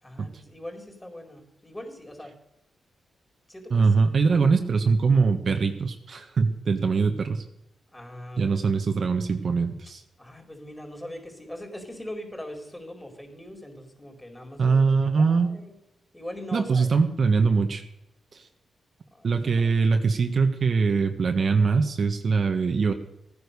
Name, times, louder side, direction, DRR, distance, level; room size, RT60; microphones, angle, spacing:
voice 1, 0.0-2.3 3.5-3.9 7.9-8.6 10.2-15.7 16.1-16.9 19.1-19.7, left 1 dB, 15° left, 3 dB, 4.5 m, -41 dB
voice 2, 3.7-7.4 8.4-10.0 14.6-15.5 16.5-17.8 18.3-18.4 19.2-22.9, right 4 dB, 55° right, 6 dB, 1.3 m, -22 dB
15.0 x 9.7 x 6.8 m, 0.85 s
cardioid pair, 65°, 0 cm